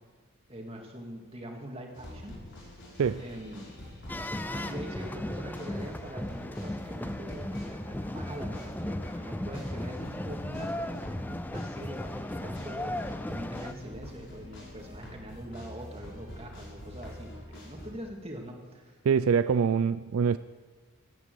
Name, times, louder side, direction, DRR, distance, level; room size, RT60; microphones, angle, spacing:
voice 1, 0.5-2.4 3.2-3.7 4.5-19.0, equal, 25° right, 2.1 m, -43 dB
sound 1, 1.9-17.9, left 1 dB, 50° left, 5.7 m, -46 dB
sound 2, 4.1-13.7, left 1 dB, 10° left, 0.4 m, -36 dB
voice 2, 19.0-20.4, right 6 dB, 70° right, 0.3 m, -24 dB
16.0 x 9.1 x 7.8 m
head